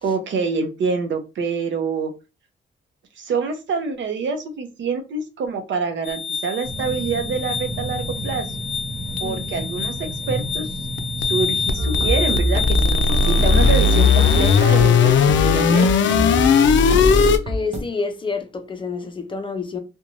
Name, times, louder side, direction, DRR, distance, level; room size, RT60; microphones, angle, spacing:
voice 1, 0.0-2.1 3.2-8.5 9.2-10.7 11.2-15.1 15.4-16.3, right 5 dB, 80° right, 0.6 m, -26 dB
sound 1, 6.1-17.4, left 6 dB, 85° left, 0.4 m, -19 dB
sound 2, 6.6-12.2, right 1 dB, 55° right, 1.2 m, -31 dB
sound 3, 11.8-17.8, equal, 35° right, 0.6 m, -24 dB
voice 2, 17.5-19.8, left 4 dB, 25° left, 0.4 m, -28 dB
2.5 x 2.2 x 2.9 m
wide cardioid pair, 165°, 19 cm